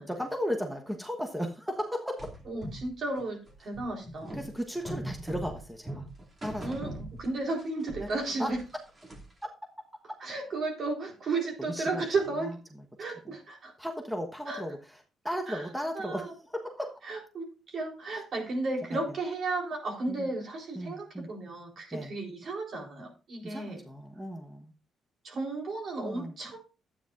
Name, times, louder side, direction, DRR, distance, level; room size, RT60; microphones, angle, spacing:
voice 1, 0.1-2.3 4.3-6.1 6.4-6.8 8.0-8.1 8.4-8.5 9.4-9.5 10.1-10.2 11.7-12.1 13.2-13.3 13.8-17.0 18.9-19.0 20.1-20.3 20.7-21.3 21.9-22.1 23.4-24.7 26.0-26.3, equal, 5° right, 3 dB, 1.2 m, -35 dB
sound 1, 2.2-7.6 7.9-9.4, right 1 dB, 30° right, 2.6 m, -41 dB
voice 2, 2.5-4.4 6.6-8.6 10.2-12.5 13.0-13.7 14.5-14.6 15.5-15.7 15.9-16.3 17.0-23.8 25.2-26.6, right 3 dB, 55° right, 1 dB, 3.9 m, -34 dB
12.0 x 9.1 x 2.5 m, 0.34 s
cardioid pair, 90°, 0 cm